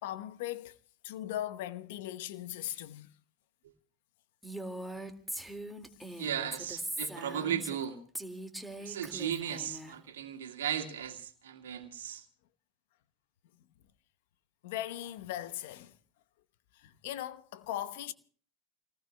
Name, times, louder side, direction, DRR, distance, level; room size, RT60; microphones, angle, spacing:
voice 1, 0.0-0.8 1.0-3.1 4.8-4.9 14.6-16.0 16.8-18.1, left 13 dB, 70° left, 0.9 m, -39 dB
Female speech woman speaking, 4.4-7.8 8.1-9.9, right 1 dB, ahead, 2.0 m, -41 dB
voice 2, 6.2-8.0 8.8-12.2, right 9 dB, 80° right, 2.1 m, -36 dB
29.5 x 19.5 x 2.2 m
hypercardioid pair, 90°, 0 cm